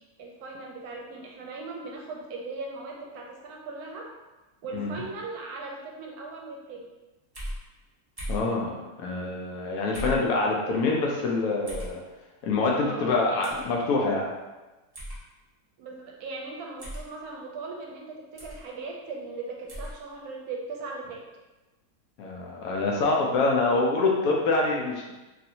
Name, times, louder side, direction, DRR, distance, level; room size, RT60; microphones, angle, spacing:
voice 1, 0.2-4.1 4.6-6.9 12.8-13.6 15.8-21.2, right 3 dB, 75° right, -1 dB, 1.1 m, -39 dB
sound 1, 7.3-7.6 8.2-8.5 9.9-10.2 11.7-11.9 13.4-13.6 14.9-15.2 16.8-17.1 18.4-18.6 19.7-19.9, equal, 25° right, 0.5 m, -35 dB
voice 2, 8.3-12.0 12.4-14.2 22.2-25.1, left 3 dB, 70° left, -2 dB, 1.0 m, -25 dB
3.1 x 2.6 x 2.7 m, 1.1 s
omnidirectional pair, 1.6 m